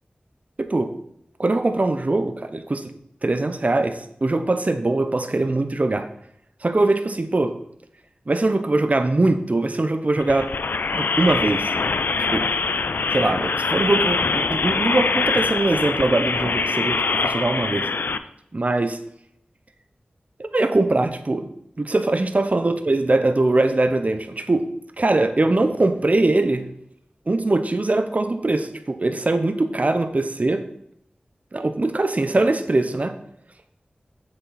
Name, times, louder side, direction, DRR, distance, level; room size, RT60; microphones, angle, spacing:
voice 1, 0.6-0.9 1.4-2.8 3.2-6.1 6.6-7.5 8.3-10.5 10.9-11.7 12.2-12.5 13.1-17.9 18.5-19.0 20.5-21.5 21.8-24.7 25.0-26.6 27.3-30.6 31.5-33.1, right 2 dB, 45° right, 8 dB, 0.7 m, -21 dB
sound 1, 10.2-18.2, left 4 dB, 80° left, 0.4 m, -23 dB
7.3 x 6.4 x 4.2 m, 0.74 s
wide cardioid pair, 45°, 3 cm